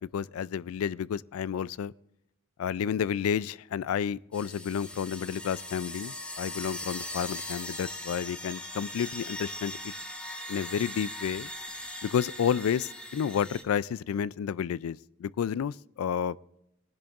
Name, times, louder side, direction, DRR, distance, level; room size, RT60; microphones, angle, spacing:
voice 1, 0.1-1.9 2.6-9.9 10.5-11.5 12.0-16.4, left 8 dB, 85° left, 0.3 m, -31 dB
sound 1, 4.3-13.6, left 1 dB, 5° left, 1.1 m, -40 dB
21.5 x 10.5 x 2.4 m
head